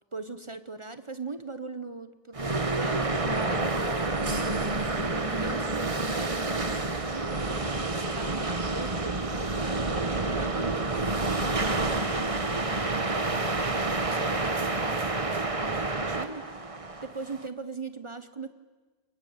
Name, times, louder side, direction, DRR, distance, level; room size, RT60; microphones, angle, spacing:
voice 1, 0.1-11.9 12.9-16.6 17.0-18.5, right 3 dB, 50° right, 11 dB, 0.3 m, -40 dB
sound 1, 2.3-17.5, right 2 dB, 20° right, 1.1 m, -29 dB
27.0 x 22.5 x 8.6 m, 1.3 s
omnidirectional pair, 2.0 m